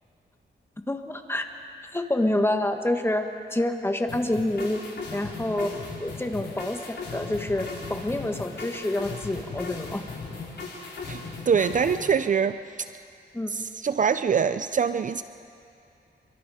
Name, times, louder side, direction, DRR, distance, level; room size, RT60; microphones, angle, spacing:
voice 1, 0.9-1.4 1.9-3.2 3.5-4.8 5.1-5.7 6.0-10.0 13.3-13.5, left 1 dB, 15° left, 5 dB, 1.6 m, -27 dB
sound 1, 4.1-12.1, left 3 dB, 75° left, 4.6 m, -37 dB
voice 2, 11.1-12.9 13.5-15.2, right 6 dB, 45° right, 12 dB, 0.5 m, -24 dB
27.5 x 23.5 x 5.0 m, 2.5 s
cardioid pair, 100°, 18 cm